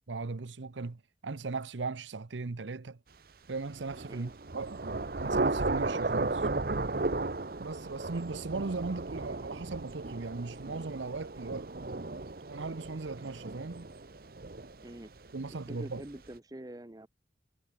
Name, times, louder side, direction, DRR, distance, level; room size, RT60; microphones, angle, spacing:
voice 1, 0.1-3.0 3.5-6.5 7.6-11.7 12.5-13.9 15.3-16.0, right 3 dB, 80° right, 0.8 m, -38 dB
Thunder / Rain, 3.7-15.3, right 3 dB, 50° right, 0.9 m, -35 dB
voice 2, 15.5-17.1, right 1 dB, 20° right, 0.7 m, -46 dB
head